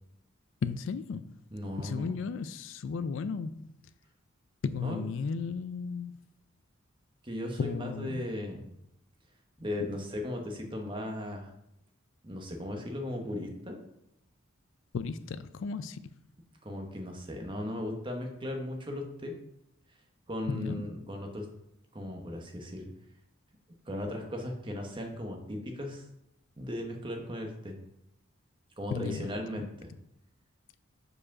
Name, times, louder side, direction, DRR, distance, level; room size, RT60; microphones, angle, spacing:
voice 1, 0.6-1.4 1.8-3.9 4.6-6.2 7.6-8.2 9.8-9.9 14.9-16.2 20.5-20.9 28.9-29.7, left 5 dB, 60° left, 14 dB, 0.3 m, -35 dB
voice 2, 1.5-2.1 4.8-5.0 7.2-8.7 9.6-11.5 12.2-13.8 16.6-19.3 20.3-21.5 21.9-22.9 23.9-26.0 26.6-27.7 28.8-29.9, left 1 dB, 25° right, 2 dB, 1.0 m, -37 dB
4.9 x 4.8 x 5.8 m, 0.82 s
head